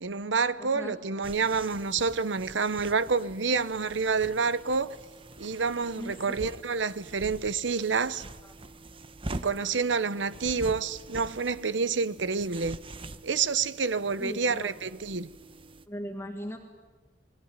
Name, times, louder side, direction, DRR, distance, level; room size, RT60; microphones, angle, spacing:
voice 1, 0.0-5.0 5.4-8.2 9.3-12.8 13.2-15.3, right 5 dB, 85° right, 0.9 m, -28 dB
voice 2, 0.6-1.0 6.0-6.4 8.4-8.5 14.2-14.7 15.9-16.6, equal, 15° left, 2.0 m, -39 dB
sound 1, 1.2-15.9, right 2 dB, 30° right, 1.0 m, -45 dB
28.0 x 21.0 x 9.7 m
head